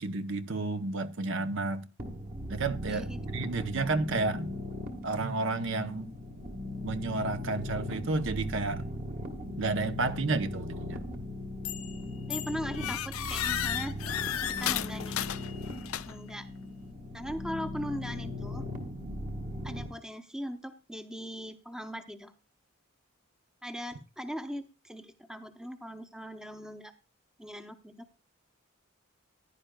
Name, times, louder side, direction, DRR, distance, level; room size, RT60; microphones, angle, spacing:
voice 1, 0.0-1.8 2.5-4.6 5.0-6.1 6.8-8.9 9.6-11.0, right 3 dB, 65° right, 0.8 m, -31 dB
sound 1, 2.0-19.9, left 1 dB, 45° right, 1.5 m, -39 dB
voice 2, 2.9-3.2 12.3-14.0 14.5-15.2 16.1-16.5 17.1-18.7 19.6-22.3 23.6-26.9 27.4-28.1, equal, 5° right, 0.7 m, -39 dB
sound 2, 11.7-12.0 12.3-16.3, left 11 dB, 90° left, 0.5 m, -34 dB
15.0 x 10.5 x 2.2 m
head